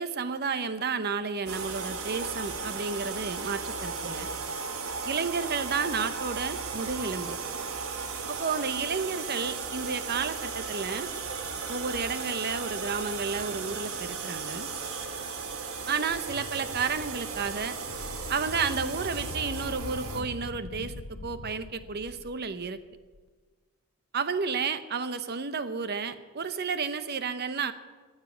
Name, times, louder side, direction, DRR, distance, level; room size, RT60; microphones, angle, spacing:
voice 1, 0.0-4.3 5.0-7.4 8.3-11.1 11.7-14.7 15.9-17.8 18.3-20.9 21.2-22.8 24.1-27.7, right 5 dB, 50° right, 12 dB, 0.8 m, -31 dB
sound 1, 1.5-20.2, right 5 dB, 90° right, 1.4 m, -36 dB
sound 2, 16.1-23.2, left 3 dB, 60° left, 0.6 m, -42 dB
14.0 x 7.5 x 9.4 m, 1.4 s
head